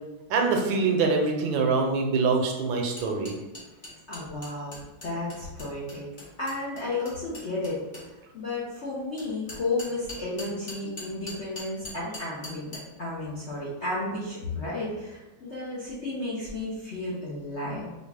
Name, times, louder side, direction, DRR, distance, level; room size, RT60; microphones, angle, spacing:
voice 1, 0.3-3.3, right 4 dB, 75° right, 2 dB, 1.3 m, -24 dB
sound 1, 3.0-8.1 9.2-12.8, left 1 dB, 35° left, 0.9 m, -41 dB
voice 2, 4.1-4.8 5.0-6.0 6.4-7.8 8.3-17.9, left 2 dB, 65° left, -7 dB, 0.7 m, -33 dB
4.7 x 2.3 x 3.4 m, 1.1 s
omnidirectional pair, 2.2 m